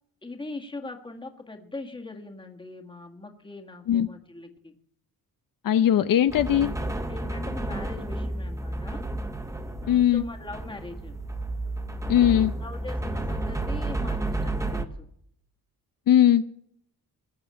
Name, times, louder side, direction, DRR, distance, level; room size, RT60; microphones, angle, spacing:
voice 1, 0.2-4.7 7.1-9.0 9.8-11.2 12.6-15.1, left 2 dB, 15° left, 3 dB, 1.7 m, -41 dB
voice 2, 5.6-6.7 9.9-10.2 12.1-12.5 16.1-16.4, left 10 dB, 65° left, 9 dB, 0.8 m, -19 dB
sound 1, 6.3-14.8, right 2 dB, 10° right, 1.0 m, -31 dB
20.0 x 7.9 x 8.6 m, 0.69 s
wide cardioid pair, 165°, 36 cm